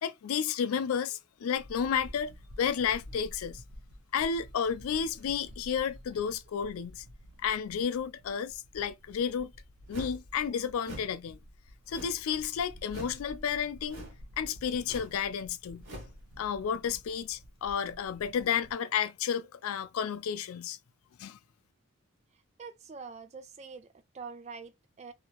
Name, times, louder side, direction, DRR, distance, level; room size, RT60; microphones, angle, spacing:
voice 1, 0.0-3.6 4.1-7.0 7.4-9.5 9.9-11.4 11.9-14.0 14.4-15.8 16.4-20.8 21.2-21.4, left 7 dB, 85° left, 0.4 m, -32 dB
sound 1, 1.5-18.7, equal, 90° right, 0.8 m, -51 dB
sound 2, 9.9-10.3 10.8-11.2 11.9-12.3 12.9-13.2 13.9-14.2 14.8-15.2 15.8-16.2, right 1 dB, 65° right, 1.4 m, -44 dB
voice 2, 22.6-25.1, right 5 dB, 30° right, 0.4 m, -45 dB
2.9 x 2.8 x 2.5 m
head